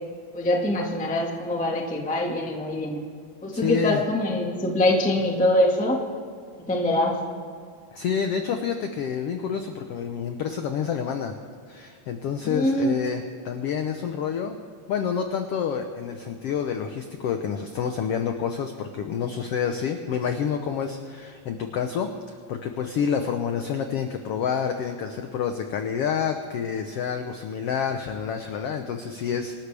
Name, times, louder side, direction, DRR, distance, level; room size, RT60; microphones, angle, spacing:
voice 1, 0.3-3.0 3.4-6.0 6.7-7.2 12.4-12.9, left 1 dB, 10° left, 0 dB, 0.5 m, -24 dB
voice 2, 3.6-4.0 7.9-11.4 11.7-14.6 14.9-29.5, left 7 dB, 85° left, 6 dB, 1.3 m, -28 dB
26.5 x 13.0 x 3.4 m, 2.2 s
omnidirectional pair, 3.8 m